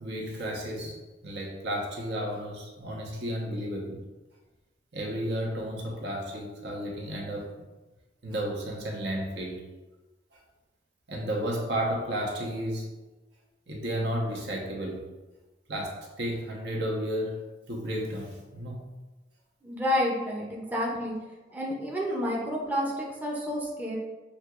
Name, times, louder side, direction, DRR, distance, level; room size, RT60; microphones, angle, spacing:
voice 1, 0.0-4.0 4.9-7.5 8.2-9.6 10.3-10.4 11.1-12.9 13.7-15.0 15.7-18.8, equal, 65° right, -2 dB, 1.0 m, -33 dB
voice 2, 19.6-21.1 21.5-24.0, left 1 dB, 10° right, -3 dB, 0.6 m, -30 dB
6.3 x 2.8 x 2.4 m, 1.1 s
head